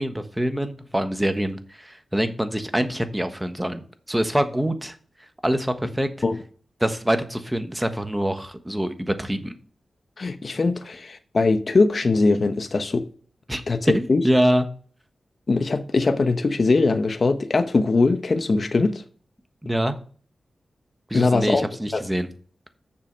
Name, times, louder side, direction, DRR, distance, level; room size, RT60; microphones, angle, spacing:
voice 1, 0.0-3.8 4.1-5.0 5.4-6.1 6.8-9.5 13.5-13.6 13.9-14.7 19.6-20.0 21.1-22.3, equal, 10° right, 1.2 m, -25 dB
voice 2, 10.2-13.0 13.7-14.2 15.5-19.0 21.1-21.7 21.9-22.0, left 3 dB, 55° left, 0.9 m, -21 dB
7.0 x 5.7 x 6.2 m
cardioid pair, 70°, 0 cm